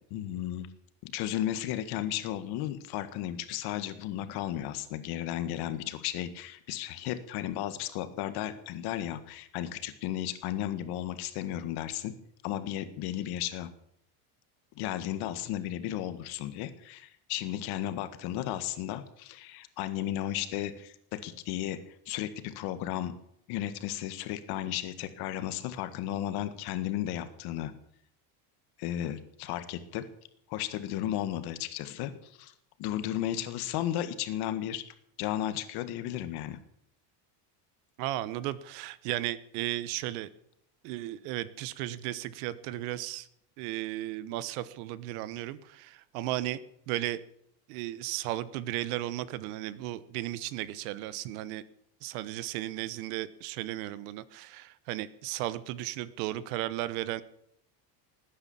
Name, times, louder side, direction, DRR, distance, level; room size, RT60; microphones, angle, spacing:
voice 1, 0.1-0.7 1.0-12.1 12.4-13.7 14.8-23.1 23.5-27.7 28.8-30.1 30.5-32.5 32.8-34.8 35.2-36.6, left 12 dB, 55° left, 11 dB, 1.7 m, -34 dB
voice 2, 38.0-40.3 40.8-43.3 43.6-46.6 46.9-47.2 47.7-51.6 52.0-57.2, right 15 dB, 80° right, 16 dB, 1.2 m, -35 dB
18.5 x 9.8 x 7.1 m, 0.70 s
cardioid pair, 155°, 45 cm